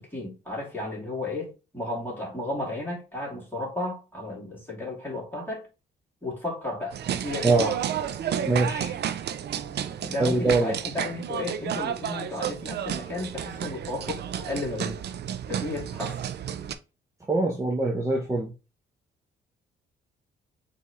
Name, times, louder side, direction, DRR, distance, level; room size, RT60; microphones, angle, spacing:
voice 1, 0.0-5.6 6.2-7.8 10.0-15.0 15.5-16.2, left 2 dB, 10° left, 2.5 m, -33 dB
sound 1, 6.9-16.7, right 9 dB, 55° right, 0.5 m, -32 dB
voice 2, 8.5-8.9 10.2-10.7 17.3-18.5, right 3 dB, 15° right, 0.8 m, -23 dB
4.5 x 2.8 x 3.5 m
cardioid pair, 90°, 20 cm